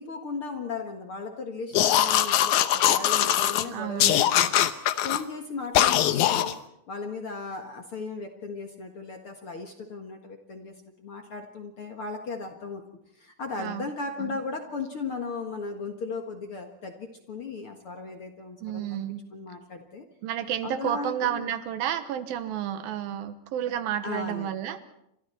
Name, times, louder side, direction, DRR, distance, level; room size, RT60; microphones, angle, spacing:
voice 1, 0.0-6.6 6.9-12.8 13.1-19.0 19.3-20.1 20.6-21.5 24.0-24.5, left 4 dB, 50° left, 4 dB, 1.8 m, -36 dB
sound 1, 1.7-3.6 4.0-5.2 5.7-6.5, left 11 dB, 70° left, 2.0 m, -22 dB
voice 2, 3.7-4.2 13.6-13.9 14.2-14.4 18.6-19.2 20.2-24.8, right 10 dB, 75° right, 11 dB, 2.9 m, -31 dB
30.0 x 26.0 x 4.4 m, 0.78 s
omnidirectional pair, 4.3 m